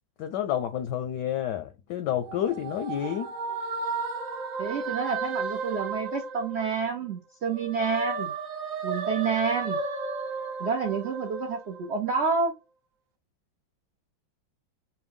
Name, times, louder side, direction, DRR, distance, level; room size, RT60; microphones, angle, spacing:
voice 1, 0.2-3.3, left 10 dB, 75° left, 1.0 m, -29 dB
sound 1, 2.1-7.1 7.4-12.2, right 4 dB, 50° right, 1.1 m, -34 dB
voice 2, 4.6-8.3 8.8-9.8 10.6-12.5, right 5 dB, 75° right, 0.6 m, -28 dB
5.3 x 2.2 x 3.4 m
omnidirectional pair, 2.2 m